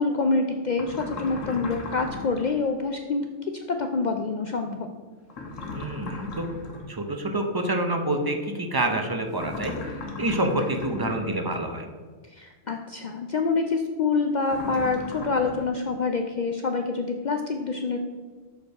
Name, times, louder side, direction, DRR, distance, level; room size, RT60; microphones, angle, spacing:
voice 1, 0.0-3.3 3.5-4.9 12.3-18.0, left 4 dB, 65° left, 4 dB, 0.4 m, -26 dB
sound 1, 0.7-2.6 5.3-6.9 9.3-11.3 14.5-15.7, left 3 dB, 85° left, 1.4 m, -37 dB
voice 2, 5.7-6.5 6.9-9.7 10.2-11.9, right 1 dB, 25° right, 4 dB, 0.5 m, -27 dB
6.7 x 5.3 x 4.6 m, 1.5 s
omnidirectional pair, 1.3 m